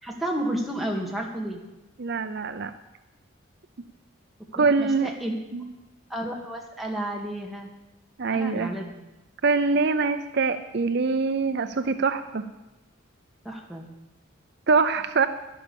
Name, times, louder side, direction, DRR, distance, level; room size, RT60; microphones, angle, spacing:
voice 1, 0.0-1.6 4.6-5.4 6.1-7.7 8.3-8.9 13.4-13.8, right 1 dB, ahead, -1 dB, 1.9 m, -31 dB
voice 2, 2.0-2.7 4.5-5.1 5.5-5.7 8.2-8.7 9.4-12.5 14.7-15.3, right 4 dB, 50° right, 10 dB, 0.5 m, -24 dB
11.0 x 11.0 x 7.0 m, 1.0 s
head